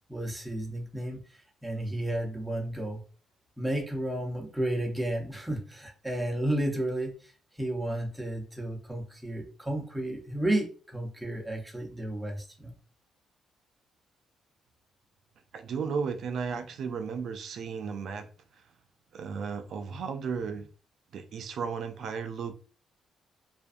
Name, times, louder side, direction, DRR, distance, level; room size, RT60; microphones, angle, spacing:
voice 1, 0.1-3.0 3.6-12.7, right 1 dB, 5° right, 0.8 m, -32 dB
voice 2, 15.5-18.3 19.1-20.7 21.1-22.5, right 6 dB, 65° right, 0.4 m, -34 dB
2.4 x 2.2 x 2.5 m
cardioid pair, 90°, 0 cm